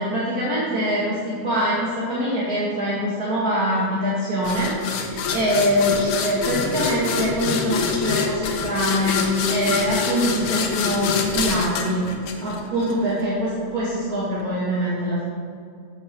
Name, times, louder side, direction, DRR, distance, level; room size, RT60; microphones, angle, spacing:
voice 1, 0.0-12.0 12.4-15.2, equal, 35° right, -7 dB, 2.1 m, -24 dB
sound 1, 4.4-12.9, left 5 dB, 85° left, 2.6 m, -25 dB
12.0 x 7.8 x 7.0 m, 2.3 s
omnidirectional pair, 3.3 m